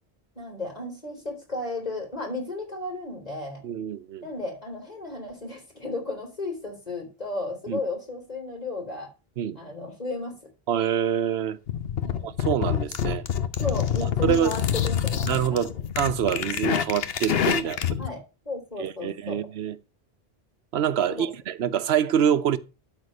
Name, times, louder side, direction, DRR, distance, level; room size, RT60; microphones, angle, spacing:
voice 1, 0.4-3.6 4.2-9.1 9.5-10.4 12.0-12.2 13.6-15.7 17.6-18.2 18.4-19.4 21.1-21.3, left 2 dB, 40° left, 4.1 m, -34 dB
voice 2, 3.6-4.2 7.7-7.8 9.4-9.6 10.7-11.6 12.2-13.2 14.2-14.6 15.2-15.7 16.0-18.0 18.8-19.8 20.7-22.6, right 9 dB, 85° right, 0.9 m, -25 dB
sound 1, 11.7-18.1, left 9 dB, 70° left, 1.0 m, -27 dB
12.5 x 4.1 x 6.4 m
omnidirectional pair, 1.0 m